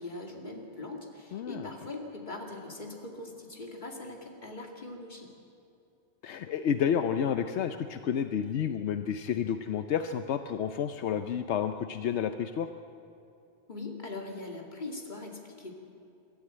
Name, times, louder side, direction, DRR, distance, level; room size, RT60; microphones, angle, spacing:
voice 1, 0.0-5.3 13.7-15.7, left 2 dB, 45° left, 1 dB, 2.6 m, -41 dB
voice 2, 1.3-1.7 6.2-12.7, left 8 dB, 80° left, 8 dB, 1.0 m, -30 dB
23.0 x 13.0 x 9.0 m, 2.7 s
omnidirectional pair, 1.1 m